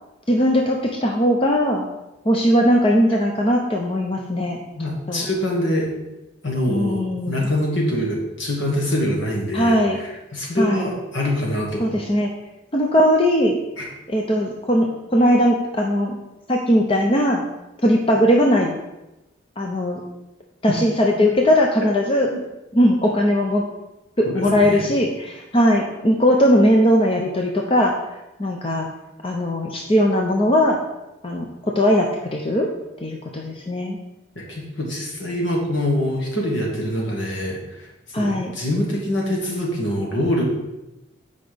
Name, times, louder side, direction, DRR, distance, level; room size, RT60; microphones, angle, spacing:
voice 1, 0.3-1.9 2.2-4.6 5.1-5.3 6.7-7.5 9.5-10.0 10.6-10.9 11.8-12.3 12.7-13.6 14.1-16.2 16.5-17.4 17.8-18.8 19.6-20.0 20.6-22.3 22.7-23.6 24.2-27.9 28.4-28.9 29.2-30.8 31.2-31.5 31.7-32.7 33.0-34.0 38.1-38.5, equal, 30° left, 0 dB, 0.7 m, -19 dB
voice 2, 4.8-5.9 6.4-11.9 13.8-13.9 22.3-22.4 24.3-24.9 34.4-37.8 38.2-40.5, left 1 dB, 70° left, -2 dB, 2.2 m, -24 dB
8.1 x 5.3 x 5.1 m, 0.97 s
head